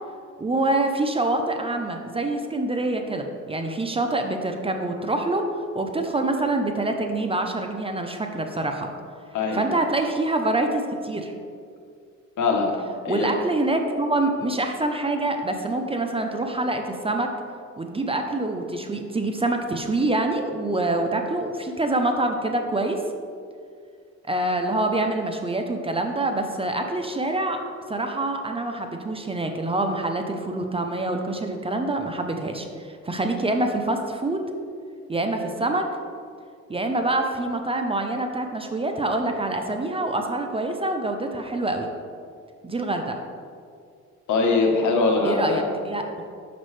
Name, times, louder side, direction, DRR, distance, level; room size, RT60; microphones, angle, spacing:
voice 1, 0.4-5.4 5.7-8.9 9.5-11.3 13.1-17.3 17.8-23.0 24.3-27.6 27.9-34.4 35.1-35.8 36.7-41.9 42.6-43.2 45.2-46.2, right 2 dB, 20° right, 4 dB, 0.6 m, -26 dB
voice 2, 9.3-9.7 12.4-12.7 13.0-13.3 44.3-45.6, left 3 dB, 75° left, 1 dB, 1.2 m, -22 dB
6.2 x 6.0 x 3.2 m, 2.2 s
cardioid pair, 90°, 30 cm